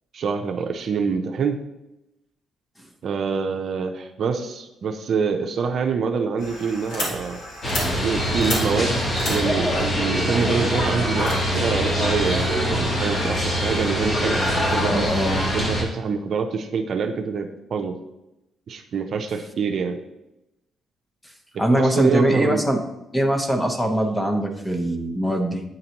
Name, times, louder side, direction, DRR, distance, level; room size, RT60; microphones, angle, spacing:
voice 1, 0.1-1.6 3.0-7.4 8.0-9.0 9.3-15.3 15.5-18.0 18.7-20.0 21.7-22.6, right 5 dB, 60° right, 5 dB, 0.6 m, -26 dB
sound 1, 6.4-13.9, left 1 dB, 80° left, 1.9 m, -34 dB
sound 2, 7.6-15.8, equal, 35° left, 1.5 m, -23 dB
voice 2, 14.8-15.4 21.6-22.8 23.1-25.6, right 1 dB, 10° left, 4 dB, 0.9 m, -22 dB
8.9 x 3.9 x 2.9 m, 0.91 s
cardioid pair, 90°, 0 cm